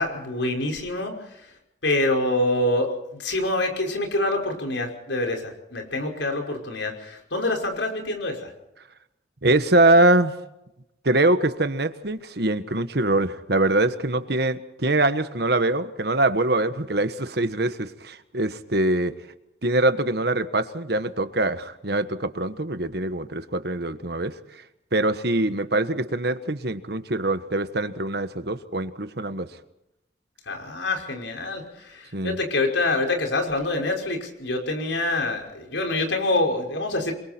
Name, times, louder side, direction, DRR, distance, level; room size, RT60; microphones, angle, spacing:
voice 1, 0.0-1.4 1.8-8.5 30.5-37.2, left 2 dB, 75° left, 3 dB, 5.6 m, -26 dB
voice 2, 9.4-10.3 11.0-19.1 19.6-24.4 24.9-29.5 32.1-32.4, right 2 dB, 55° right, 10 dB, 1.4 m, -23 dB
28.0 x 23.0 x 4.5 m, 0.87 s
head